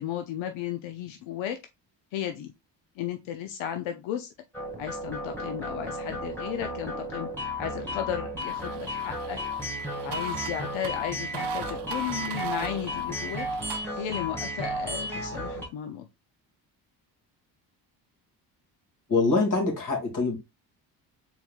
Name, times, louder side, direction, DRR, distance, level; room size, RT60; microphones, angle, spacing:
voice 1, 0.0-1.6 2.1-2.5 3.0-4.3 4.8-7.3 7.6-9.4 10.0-13.5 14.0-16.1, left 10 dB, 85° left, 0.7 m, -34 dB
sound 1, 4.5-15.7, left 1 dB, 5° left, 2.1 m, -34 dB
sound 2, 8.4-13.8, right 11 dB, 60° right, 0.8 m, -41 dB
voice 2, 19.1-20.4, left 3 dB, 40° left, 2.3 m, -24 dB
4.4 x 3.9 x 2.4 m
cardioid pair, 75°, 46 cm